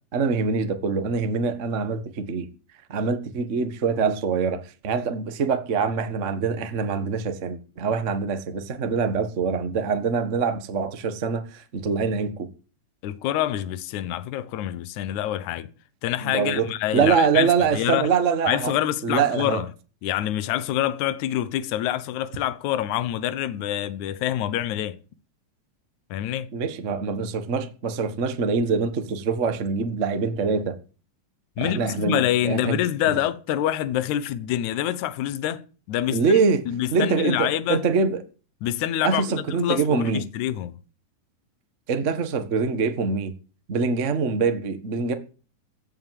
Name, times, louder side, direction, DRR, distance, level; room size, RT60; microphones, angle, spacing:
voice 1, 0.1-2.5 2.9-12.5 16.2-16.7 16.9-18.7 19.0-19.6 26.5-30.8 31.6-32.8 36.1-36.6 36.9-38.2 39.0-40.2 41.9-43.3 43.7-45.1, right 5 dB, 75° right, 0.6 m, -24 dB
voice 2, 13.0-15.7 16.0-18.1 18.5-19.7 20.0-25.0 26.1-26.5 31.6-36.3 36.7-37.8 38.6-40.8, left 12 dB, 65° left, 2.2 m, -26 dB
16.0 x 8.0 x 7.6 m
omnidirectional pair, 4.1 m